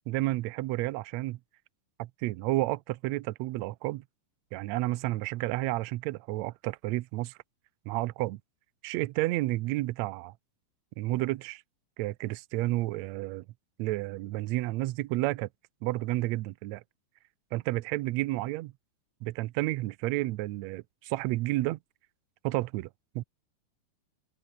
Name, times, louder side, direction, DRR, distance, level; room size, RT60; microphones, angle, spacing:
voice 1, 0.1-1.4 2.0-4.0 4.5-7.3 7.9-8.4 8.8-10.3 11.0-11.6 12.0-13.4 13.8-15.5 15.8-16.8 17.5-18.7 19.2-21.8 22.4-22.9 23.1-23.2, right 18 dB, 80° right, 1.6 m, -31 dB
open air
omnidirectional pair, 3.9 m